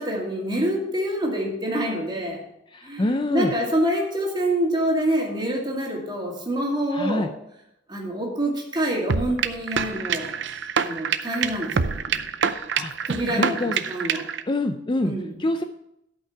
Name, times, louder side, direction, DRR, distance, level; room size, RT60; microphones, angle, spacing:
voice 1, 0.0-2.4 2.8-7.3 7.9-10.3 10.8-12.2 13.0-14.2 15.0-15.3, right 1 dB, 25° right, -1 dB, 2.4 m, -26 dB
voice 2, 2.7-3.5 6.9-7.3 12.8-12.9 13.3-13.7 14.5-15.6, left 1 dB, 25° left, 7 dB, 0.4 m, -26 dB
sound 1, 9.1-14.4, right 6 dB, 70° right, 0.6 m, -26 dB
12.5 x 5.5 x 5.9 m, 0.80 s
head